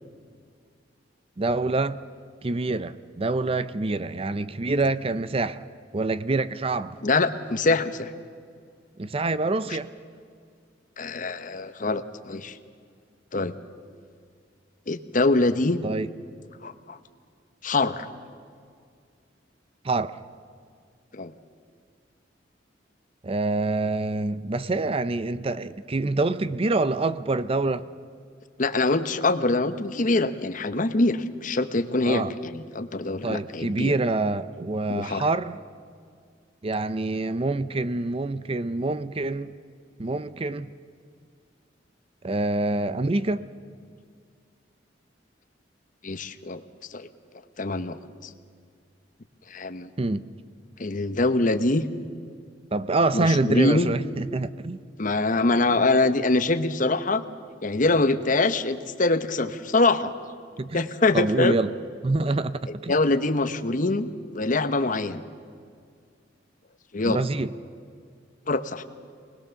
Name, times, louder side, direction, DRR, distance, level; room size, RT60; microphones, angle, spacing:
voice 1, 1.4-2.0 2.4-5.6 5.9-7.0 9.0-9.9 15.8-16.1 19.8-20.1 23.2-27.8 32.1-32.3 33.2-35.6 36.6-39.5 40.0-40.7 42.2-43.5 50.0-50.2 52.7-54.8 60.6-60.8 61.1-61.7 62.0-62.9 67.0-67.5, right 2 dB, 30° right, 14 dB, 0.5 m, -26 dB
voice 2, 7.0-8.1 11.0-12.6 13.3-13.5 14.9-15.8 16.6-17.0 17.6-18.1 21.1-21.3 28.6-33.9 34.9-35.2 46.0-46.6 46.9-47.1 47.6-48.3 49.5-49.9 50.8-51.8 53.1-53.9 55.0-57.2 57.6-60.1 60.7-61.6 62.9-65.2 66.9-67.2 68.5-68.8, left 2 dB, 45° left, 11 dB, 1.0 m, -24 dB
25.0 x 20.0 x 7.0 m, 2.2 s
head